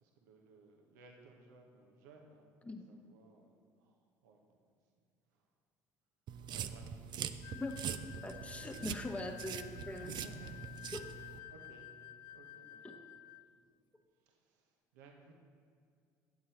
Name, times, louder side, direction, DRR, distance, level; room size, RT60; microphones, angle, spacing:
voice 1, 0.0-4.9 5.3-5.5 6.5-7.4 9.5-9.6 9.9-10.7 11.0-11.1 11.5-12.0 12.3-13.0 13.5-13.6 14.1-15.4, right 3 dB, 80° right, 1 dB, 1.0 m, -58 dB
sound 1, 6.3-11.4, right 8 dB, 50° right, 0.5 m, -43 dB
sound 2, 7.4-13.5, left 14 dB, 55° left, 0.4 m, -52 dB
voice 2, 8.2-10.1 10.9-11.0 12.8-12.9, left 2 dB, 15° left, 4 dB, 1.0 m, -42 dB
9.5 x 7.6 x 4.2 m, 2.3 s
hypercardioid pair, 70°, 9 cm